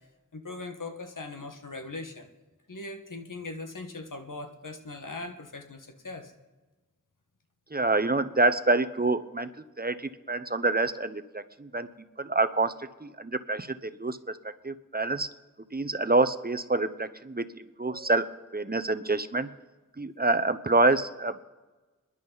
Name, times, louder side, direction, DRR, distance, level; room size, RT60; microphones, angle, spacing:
voice 1, 0.3-2.3 2.7-6.3, left 2 dB, 80° left, 5 dB, 1.5 m, -40 dB
voice 2, 7.7-9.5 9.8-11.9 12.2-14.2 14.6-15.3 15.7-17.4 17.8-18.2 18.5-19.5 20.0-21.4, right 2 dB, 30° right, 11 dB, 0.7 m, -26 dB
30.0 x 11.0 x 4.0 m, 1.2 s
wide cardioid pair, 50°, 31 cm